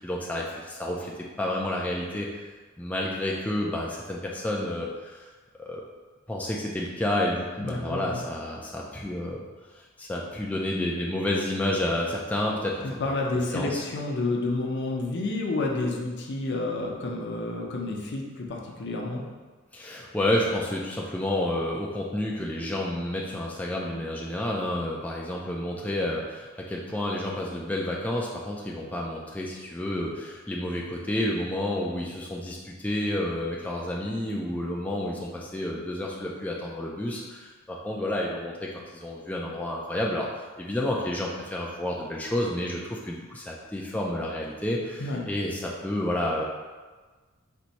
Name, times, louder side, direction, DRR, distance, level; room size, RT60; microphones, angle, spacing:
voice 1, 0.0-2.5 2.8-5.3 5.6-5.8 6.3-9.4 9.7-12.8 13.5-13.8 19.7-40.3 40.6-46.4, left 1 dB, 5° left, -3 dB, 0.3 m, -30 dB
voice 2, 7.6-8.2 12.8-19.2 45.0-45.2, left 2 dB, 55° left, 0 dB, 0.7 m, -30 dB
4.4 x 2.6 x 4.0 m, 1.4 s
head